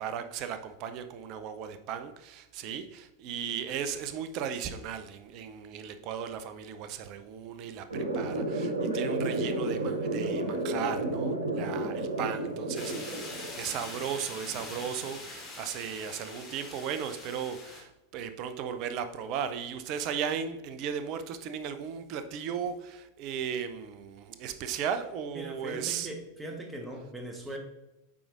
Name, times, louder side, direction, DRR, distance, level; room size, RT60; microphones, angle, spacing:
voice 1, 0.0-26.1, right 8 dB, 40° right, 10 dB, 0.6 m, -36 dB
sound 1, 7.9-13.9, right 2 dB, 80° right, 1.1 m, -31 dB
sound 2, 12.7-17.8, left 2 dB, 20° left, 2.1 m, -43 dB
voice 2, 25.3-27.6, right 1 dB, 10° right, 3 dB, 1.2 m, -40 dB
8.6 x 4.6 x 2.5 m, 0.96 s
figure-of-eight pair, 90°, 0 cm